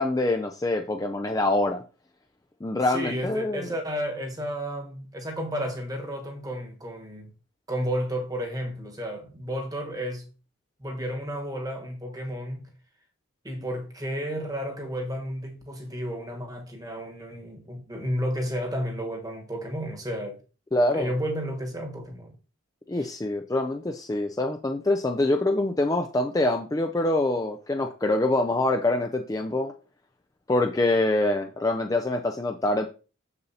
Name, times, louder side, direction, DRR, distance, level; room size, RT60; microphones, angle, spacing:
voice 1, 0.0-1.8 2.6-3.7 20.7-21.1 22.9-29.7 30.5-32.9, left 2 dB, 15° left, 0.4 m, -25 dB
voice 2, 2.9-7.3 7.7-10.3 10.8-12.7 13.4-20.4 20.9-22.3 22.9-23.1, equal, 20° right, 1.2 m, -32 dB
6.8 x 6.7 x 2.8 m
head